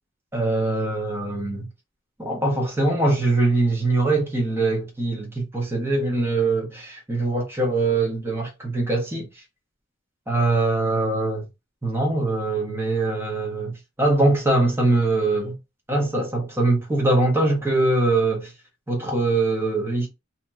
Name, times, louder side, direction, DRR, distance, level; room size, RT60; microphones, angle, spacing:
voice 1, 0.3-1.7 2.2-9.2 10.3-11.4 11.8-15.5 15.9-18.5 18.9-20.1, right 2 dB, 10° right, 0.9 m, -22 dB
2.9 x 2.9 x 2.3 m
head